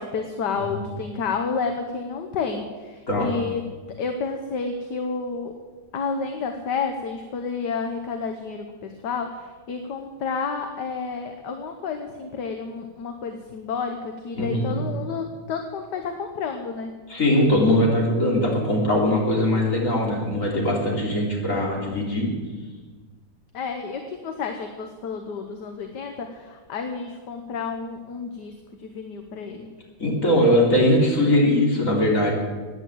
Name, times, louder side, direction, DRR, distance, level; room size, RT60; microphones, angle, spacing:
voice 1, 0.0-3.6 4.0-5.5 5.9-16.9 23.5-29.7, left 5 dB, 65° left, 6 dB, 1.6 m, -30 dB
voice 2, 14.4-14.8 17.1-22.3 30.0-32.3, left 1 dB, 40° left, -2 dB, 3.7 m, -21 dB
16.0 x 9.9 x 7.7 m, 1.4 s
omnidirectional pair, 2.1 m